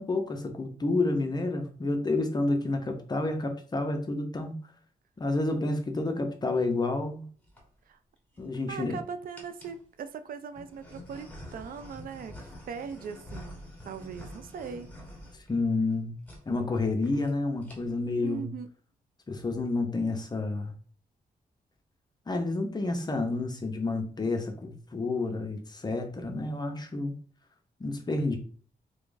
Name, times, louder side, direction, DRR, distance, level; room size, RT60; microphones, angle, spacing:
voice 1, 0.0-4.5 5.2-7.2 8.4-9.0 15.5-16.1 16.5-18.5 19.3-20.7 22.3-27.1 27.8-28.4, left 2 dB, 25° left, 5 dB, 0.7 m, -29 dB
sound 1, 7.2-7.6 8.3-8.9 9.3-9.8 10.5-16.0 16.2-16.4 16.7-16.8 17.0-17.3 17.6-18.1, left 1 dB, 10° left, 1.1 m, -47 dB
voice 2, 8.7-14.9 18.2-18.7, right 6 dB, 70° right, 9 dB, 0.4 m, -40 dB
3.4 x 2.5 x 3.8 m, 0.43 s
wide cardioid pair, 130°, 15 cm